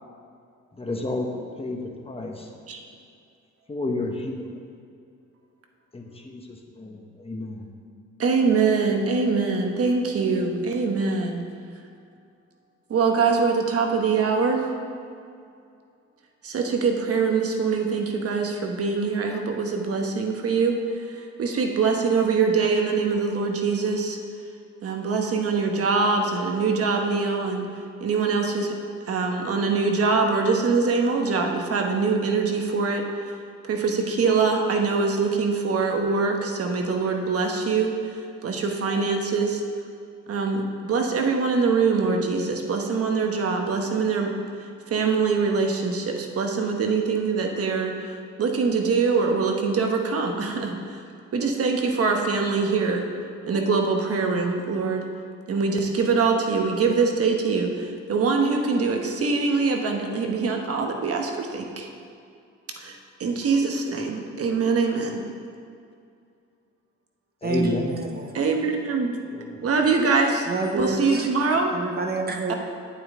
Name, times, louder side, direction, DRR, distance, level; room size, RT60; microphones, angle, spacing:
voice 1, 0.8-1.8 2.1-2.5 3.7-4.5 5.9-7.7 67.4-68.0 69.3-69.6, left 2 dB, 20° left, 2 dB, 1.1 m, -31 dB
voice 2, 8.2-11.4 12.9-14.6 16.4-20.7 21.2-24.2 24.8-27.7 28.0-28.7 29.1-33.0 33.6-37.9 38.4-39.6 40.3-44.3 44.9-51.0 51.3-53.1 53.4-55.0 55.5-61.9 62.8-65.2 68.3-69.1 69.6-70.5 70.7-71.7 72.5-72.6, right 4 dB, 50° right, 2 dB, 1.2 m, -23 dB
voice 3, 67.4-68.4 70.5-71.3 71.7-72.5, right 2 dB, 30° right, 3 dB, 1.0 m, -28 dB
8.8 x 8.5 x 3.7 m, 2.4 s
cardioid pair, 90°, 30 cm